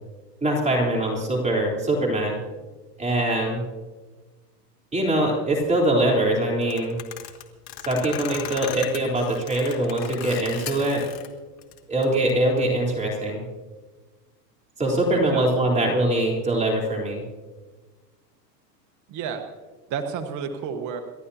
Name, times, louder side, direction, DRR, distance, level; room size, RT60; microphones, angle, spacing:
voice 1, 0.4-2.4 3.0-3.6 4.9-6.9 7.9-11.0 11.9-13.4 14.8-17.2, right 1 dB, 15° right, -2 dB, 3.9 m, -23 dB
sound 1, 6.6-11.3 11.6-12.3, left 10 dB, 80° left, 2.1 m, -37 dB
voice 2, 15.3-15.7 19.1-19.4 19.9-21.0, right 6 dB, 35° right, 6 dB, 1.4 m, -31 dB
29.0 x 12.5 x 2.9 m, 1.3 s
hypercardioid pair, 120°, 49 cm